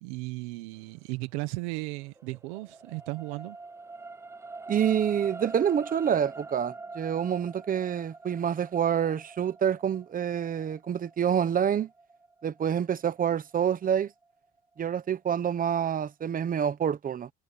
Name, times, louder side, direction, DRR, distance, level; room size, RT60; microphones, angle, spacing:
voice 1, 0.0-3.6, right 23 dB, 85° right, 1.1 m, -35 dB
sound 1, 1.9-14.2 14.8-14.9, right 3 dB, 10° right, 0.5 m, -45 dB
voice 2, 4.7-11.9 12.4-14.1 14.8-17.3, right 8 dB, 25° right, 1.0 m, -27 dB
cardioid pair, 140°, 34 cm